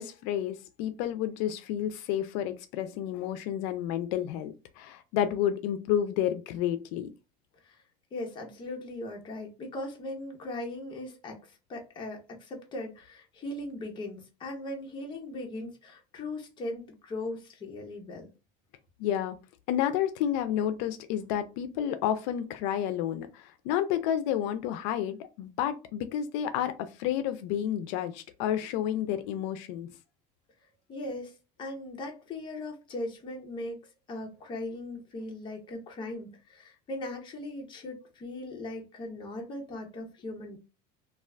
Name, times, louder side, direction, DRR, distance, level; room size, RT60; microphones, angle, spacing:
voice 1, 0.0-7.1 19.0-19.4 19.7-29.9, left 10 dB, 85° left, 0.4 m, -30 dB
voice 2, 8.1-18.3 30.9-31.3 31.6-33.8 34.1-40.6, left 2 dB, 25° left, 0.7 m, -39 dB
2.4 x 2.4 x 3.3 m
cardioid pair, 165°, 21 cm